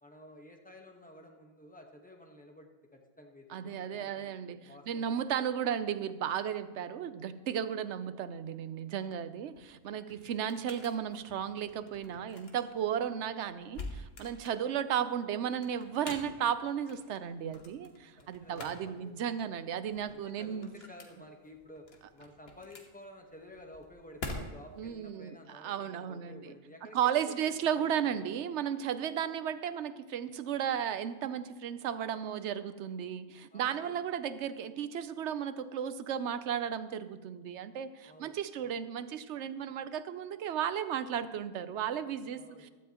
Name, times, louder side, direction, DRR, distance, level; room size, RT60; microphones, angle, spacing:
voice 1, 0.0-5.2 9.5-9.6 18.2-19.2 20.1-28.3 33.5-33.9 38.0-38.8 42.3-42.7, left 1 dB, 10° left, 2 dB, 1.1 m, -53 dB
voice 2, 3.5-20.7 24.8-26.5 26.8-42.7, right 9 dB, 80° right, 13 dB, 0.9 m, -34 dB
sound 1, 9.4-24.9, left 2 dB, 60° left, 1.5 m, -48 dB
15.5 x 12.5 x 2.9 m, 1.2 s
omnidirectional pair, 1.2 m